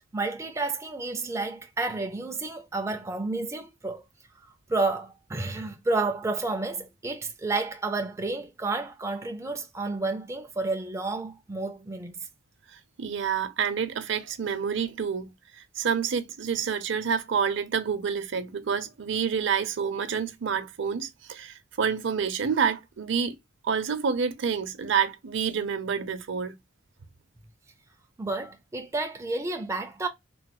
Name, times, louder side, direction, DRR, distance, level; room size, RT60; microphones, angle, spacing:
voice 1, 0.1-4.0 4.7-12.2 28.2-30.1, right 3 dB, 15° right, 0.3 m, -30 dB
voice 2, 13.0-15.3 15.8-23.3 23.6-26.5, right 6 dB, 65° right, 0.5 m, -28 dB
3.1 x 2.2 x 3.0 m
head